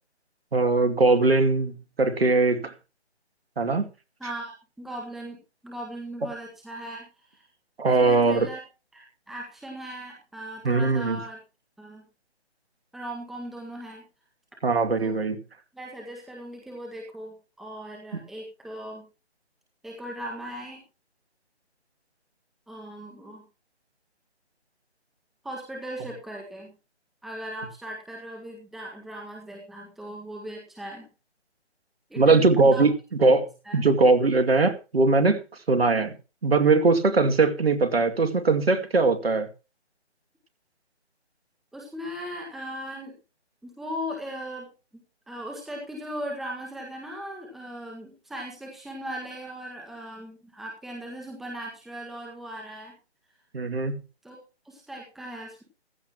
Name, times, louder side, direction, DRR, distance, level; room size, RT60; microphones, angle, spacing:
voice 1, 0.5-2.7 3.6-3.8 7.8-8.5 10.6-11.2 14.6-15.4 32.2-32.9 33.2-33.5 33.7-35.4 35.7-36.1 36.4-39.5 53.5-54.0, right 3 dB, 60° right, 2.5 m, -21 dB
voice 2, 4.2-7.4 7.8-8.6 8.9-11.4 11.8-12.1 12.9-14.0 15.0-15.2 15.7-19.1 19.8-20.8 22.7-23.4 25.4-26.7 27.2-31.1 32.1-32.9 33.7-33.8 41.7-43.1 43.6-44.7 44.9-52.9 54.2-54.4 54.7-55.6, equal, ahead, 1.8 m, -38 dB
15.0 x 14.5 x 3.0 m
figure-of-eight pair, 155°, 34 cm